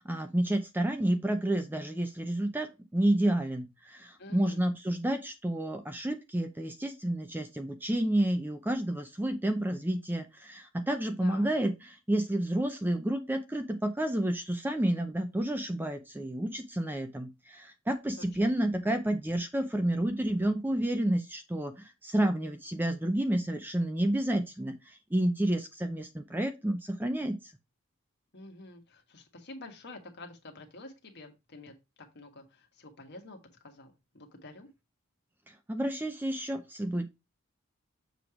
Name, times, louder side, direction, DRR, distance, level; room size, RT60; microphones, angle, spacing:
voice 1, 0.0-27.4 35.5-37.1, right 1 dB, 10° right, 7 dB, 0.5 m, -30 dB
voice 2, 4.2-4.6 11.2-11.5 18.2-18.5 28.3-33.4 33.6-34.7, left 2 dB, 50° left, 3 dB, 1.4 m, -48 dB
7.0 x 3.1 x 4.9 m, 0.24 s
head